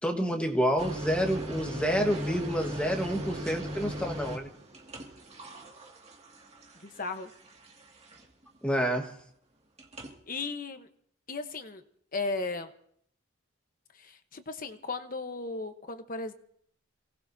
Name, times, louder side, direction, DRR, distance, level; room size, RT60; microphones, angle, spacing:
voice 1, 0.0-4.5 8.6-9.1, equal, 5° left, 2 dB, 1.4 m, -28 dB
sound 1, 0.8-8.4 9.8-10.1, equal, 30° right, 2.2 m, -39 dB
voice 2, 6.8-7.3 10.3-10.9 11.3-11.8 12.1-12.7 13.9-16.3, left 3 dB, 40° left, 7 dB, 1.0 m, -36 dB
27.5 x 18.5 x 2.8 m, 0.66 s
head